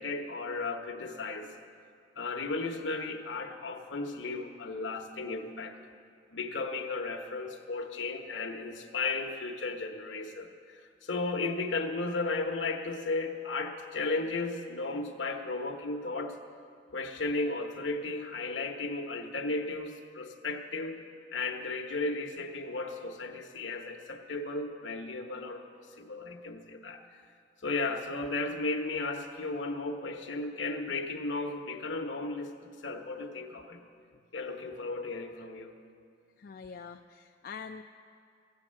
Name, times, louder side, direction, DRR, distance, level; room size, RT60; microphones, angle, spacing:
voice 1, 0.0-1.5 2.2-5.8 6.3-16.3 16.9-21.0 21.3-25.7 26.0-27.0 27.6-32.5 32.8-33.8 34.3-35.7, left 3 dB, 75° left, 4 dB, 1.1 m, -35 dB
voice 2, 36.4-37.8, left 5 dB, 55° left, 5 dB, 0.4 m, -44 dB
15.0 x 7.5 x 7.4 m, 2.4 s
head